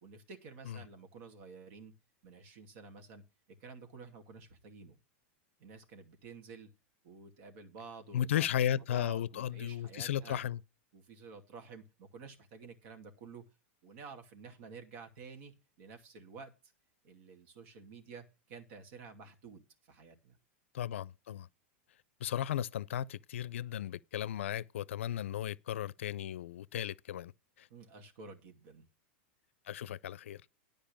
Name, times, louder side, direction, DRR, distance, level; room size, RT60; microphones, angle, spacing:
voice 1, 0.0-1.9 2.2-3.2 3.6-5.0 5.6-6.7 7.0-10.4 10.9-13.4 13.8-16.5 17.0-20.4 27.7-28.8, right 4 dB, 60° right, 2.5 m, -51 dB
voice 2, 8.1-10.6 20.7-21.5 22.2-27.3 27.6-27.7 29.7-30.4, left 10 dB, 85° left, 0.4 m, -35 dB
10.5 x 5.2 x 7.1 m
supercardioid pair, 130°, 7 cm